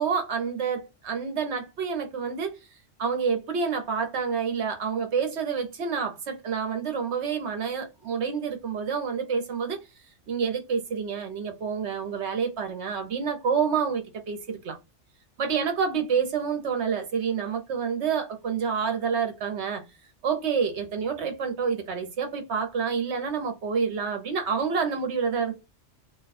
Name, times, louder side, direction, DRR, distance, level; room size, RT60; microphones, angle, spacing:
voice 1, 0.0-2.7 3.0-9.9 10.3-14.8 15.4-19.8 20.2-25.5, right 6 dB, 65° right, 1.2 m, -28 dB
2.6 x 2.3 x 4.1 m
omnidirectional pair, 1.3 m